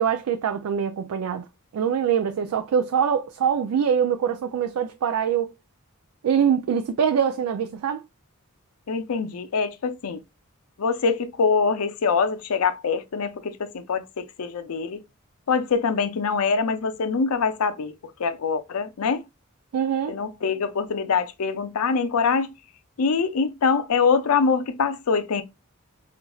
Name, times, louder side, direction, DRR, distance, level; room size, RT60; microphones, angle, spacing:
voice 1, 0.0-1.5 1.7-5.5 6.2-8.0 19.7-20.1, right 7 dB, 85° right, 0.3 m, -23 dB
voice 2, 8.9-10.2 10.8-15.0 15.5-17.9 18.2-19.2 20.1-22.5 23.0-25.4, left 5 dB, 85° left, 0.5 m, -24 dB
4.1 x 2.5 x 2.3 m
head